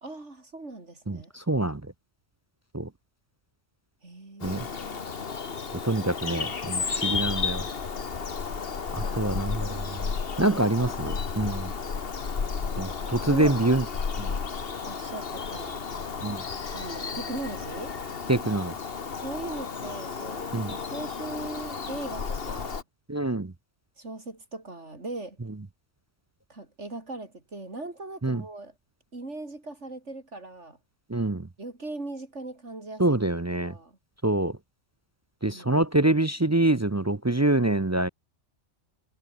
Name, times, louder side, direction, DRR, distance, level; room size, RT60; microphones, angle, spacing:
voice 1, 0.0-1.3 4.0-5.0 10.4-11.4 12.6-13.6 14.9-15.8 16.7-18.0 19.2-22.8 24.0-25.4 26.5-28.7 29.1-30.8 31.6-33.2 33.6-34.0 35.4-35.9, right 2 dB, 70° right, 4.4 m, -40 dB
voice 2, 1.5-1.8 2.7-2.9 4.4-4.6 5.8-7.6 9.0-9.7 10.4-11.7 12.8-13.8 16.2-16.4 18.3-18.7 20.5-20.7 23.1-23.5 28.2-28.4 31.1-31.4 33.0-33.7 34.2-34.5 35.4-38.1, right 2 dB, 20° right, 0.4 m, -25 dB
Bird vocalization bird call bird song, 4.4-22.8, left 5 dB, 50° left, 1.6 m, -33 dB
omnidirectional pair, 1.2 m